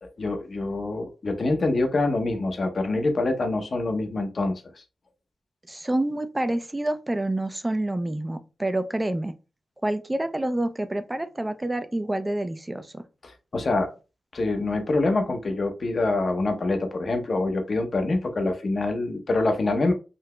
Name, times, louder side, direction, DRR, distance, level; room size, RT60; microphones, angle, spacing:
voice 1, 0.0-4.8 13.2-13.9 14.3-19.9, left 2 dB, 50° left, 0.7 m, -25 dB
voice 2, 5.7-9.3 9.8-13.0, right 1 dB, 20° right, 0.4 m, -28 dB
3.8 x 2.7 x 2.2 m
cardioid pair, 60°, 0 cm